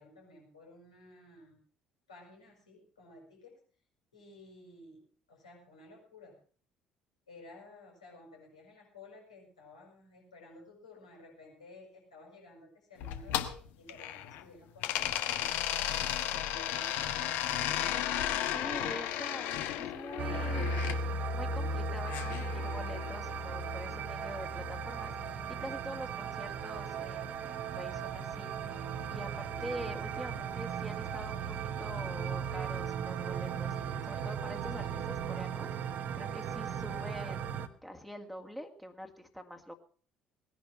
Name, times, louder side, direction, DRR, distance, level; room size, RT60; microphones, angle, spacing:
voice 1, 0.0-1.6 2.1-3.6 4.1-5.0 5.3-6.4 7.3-15.9 16.4-17.2, left 2 dB, 80° left, -1 dB, 6.8 m, -54 dB
sound 1, 13.0-14.4 14.8-21.0 22.1-23.2, left 11 dB, 60° left, 1.3 m, -34 dB
voice 2, 18.5-21.0 21.3-31.4 31.8-39.7, equal, 5° left, 3 dB, 2.1 m, -45 dB
sound 2, 20.2-37.7, right 5 dB, 50° right, 1.3 m, -36 dB
19.5 x 10.5 x 5.7 m, 0.43 s
figure-of-eight pair, 55°, 3 cm